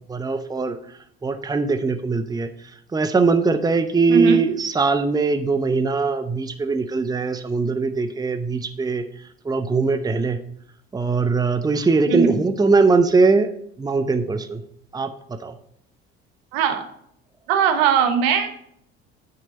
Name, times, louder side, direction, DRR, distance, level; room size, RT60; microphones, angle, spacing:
voice 1, 0.1-0.8 1.2-2.5 2.9-9.0 9.4-10.4 10.9-13.5 13.8-14.6 14.9-15.5, right 4 dB, 10° right, 10 dB, 0.7 m, -21 dB
voice 2, 12.1-12.4 16.5-16.8 17.5-18.5, right 8 dB, 75° right, 7 dB, 1.2 m, -19 dB
8.5 x 6.8 x 4.2 m, 0.69 s
hypercardioid pair, 65°, 31 cm